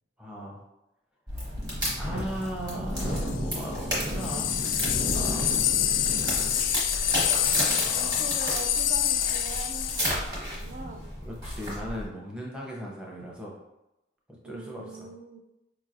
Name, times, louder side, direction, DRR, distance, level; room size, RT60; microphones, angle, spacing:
voice 1, 0.2-0.6 1.9-5.6 6.2-6.4 7.7-8.3 11.2-13.5 14.4-15.1, equal, 5° right, -3 dB, 0.7 m, -38 dB
sound 1, 1.3-12.1, equal, 20° right, 1.0 m, -33 dB
Wind, 1.5-7.2, equal, 85° right, 0.9 m, -35 dB
sound 2, 3.0-3.4 4.2-10.0, left 11 dB, 90° left, 0.3 m, -27 dB
voice 2, 7.9-11.1 14.4-15.4, right 4 dB, 45° right, 5 dB, 0.4 m, -42 dB
4.6 x 3.0 x 2.5 m, 0.93 s
head